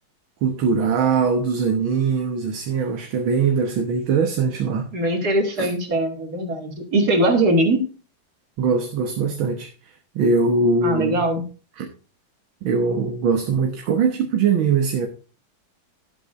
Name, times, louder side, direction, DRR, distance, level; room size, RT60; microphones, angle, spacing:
voice 1, 0.4-4.9 5.6-5.7 8.6-9.7 10.2-11.2 11.8-11.9 12.6-15.1, right 5 dB, 75° right, 2.1 m, -21 dB
voice 2, 4.9-7.8 10.8-11.4, right 1 dB, 50° right, 2.9 m, -21 dB
12.5 x 11.5 x 2.6 m
omnidirectional pair, 2.2 m